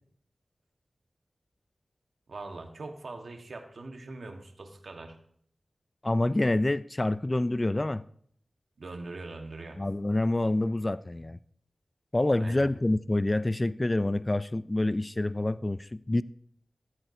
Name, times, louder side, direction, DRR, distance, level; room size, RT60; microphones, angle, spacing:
voice 1, 2.3-5.2 8.8-9.8 12.4-12.7, right 3 dB, 75° right, 1.4 m, -42 dB
voice 2, 6.0-8.0 9.8-11.4 12.1-16.2, left 2 dB, 25° left, 0.4 m, -27 dB
14.5 x 13.5 x 2.7 m
wide cardioid pair, 85°, 0 cm